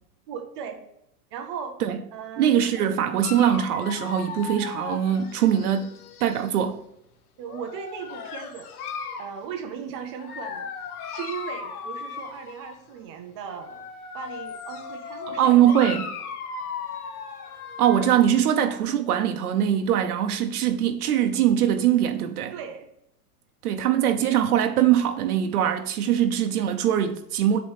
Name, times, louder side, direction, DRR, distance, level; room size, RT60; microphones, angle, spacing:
voice 1, 0.3-0.8 1.3-1.8 2.1-2.5 2.7-2.9 7.4-8.7 9.2-10.7 11.1-13.9 14.1-15.7 22.5-22.9, right 7 dB, 20° right, 0.3 m, -37 dB
voice 2, 2.4-5.9 6.2-6.8 15.4-16.1 17.8-22.5 23.6-27.6, right 10 dB, 70° right, 0.9 m, -22 dB
Dog, 3.2-6.6 7.4-9.4 10.2-12.8 13.5-18.4, left 6 dB, 65° left, 1.0 m, -37 dB
7.7 x 3.1 x 5.5 m
hypercardioid pair, 135°, 47 cm